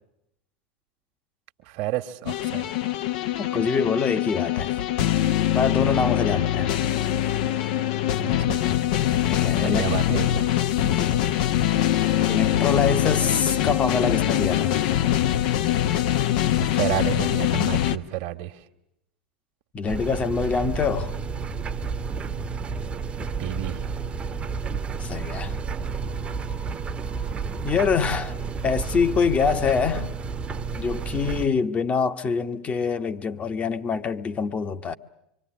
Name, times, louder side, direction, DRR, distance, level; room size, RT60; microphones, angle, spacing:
voice 1, 1.7-2.7 8.2-8.7 9.5-10.5 12.2-12.3 16.6-18.6 23.4-23.8, right 14 dB, 50° right, 1.6 m, -30 dB
sound 1, 2.3-18.0, left 12 dB, 55° left, 1.0 m, -23 dB
voice 2, 3.4-4.7 5.5-6.8 9.2-9.9 10.8-11.9 12.3-14.8 19.7-21.1 25.0-25.6 27.6-28.4 28.6-30.1 30.7-34.9, left 5 dB, 25° left, 1.3 m, -25 dB
sound 2, 19.9-31.5, right 5 dB, 20° right, 1.2 m, -31 dB
25.5 x 24.5 x 7.6 m
figure-of-eight pair, 85°, 5 cm